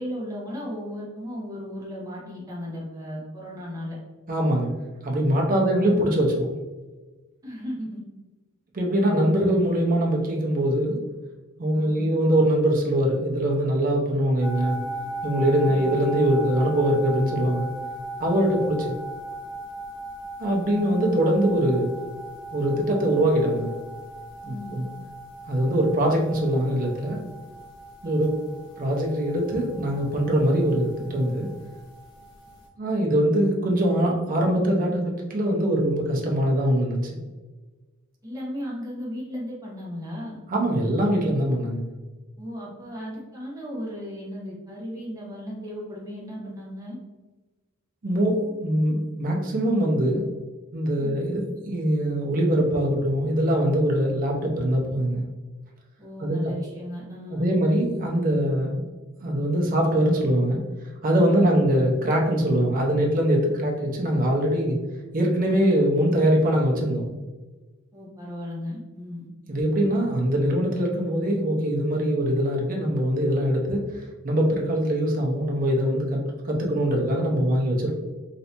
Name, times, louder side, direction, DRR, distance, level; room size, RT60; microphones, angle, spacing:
voice 1, 0.0-4.0 5.4-5.8 7.4-8.0 11.7-12.1 15.6-15.9 24.4-24.8 28.0-28.2 38.2-40.4 42.4-47.0 51.0-51.1 56.0-57.6 61.3-61.6 67.9-69.3, equal, 15° right, -5 dB, 1.0 m, -36 dB
voice 2, 4.3-4.7 5.0-6.5 8.7-11.0 11.6-14.8 15.2-17.7 18.2-19.0 20.4-21.9 22.5-23.7 24.4-24.8 25.5-27.2 28.0-28.3 28.8-31.5 32.8-37.2 40.5-41.9 48.0-50.2 50.7-55.2 56.2-56.4 57.3-58.8 59.2-60.6 61.0-64.8 65.1-67.1 69.5-73.8 74.2-77.9, right 1 dB, 40° right, 0 dB, 0.6 m, -22 dB
sound 1, 14.4-32.7, right 1 dB, 20° left, 1.2 m, -38 dB
3.2 x 2.6 x 2.8 m, 1.2 s
head